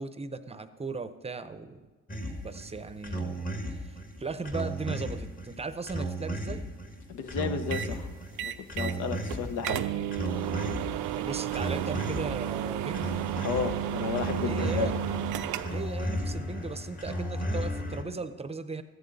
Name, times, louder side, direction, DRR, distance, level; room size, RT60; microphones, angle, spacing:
voice 1, 0.0-1.8 2.4-6.7 11.1-13.1 14.4-15.0 15.7-18.8, right 4 dB, 20° right, 11 dB, 0.6 m, -37 dB
sound 1, 2.1-18.0, right 1 dB, 30° left, 1.4 m, -35 dB
voice 2, 7.1-8.1 8.4-9.8 13.4-14.9 15.4-15.5, left 6 dB, 85° left, 8 dB, 0.9 m, -33 dB
sound 2, 7.7-7.9 8.4-9.0 9.3-9.4 9.6-15.9, right 10 dB, 85° right, 0.5 m, -32 dB
13.5 x 9.8 x 4.1 m, 1.2 s
cardioid pair, 90°, 30 cm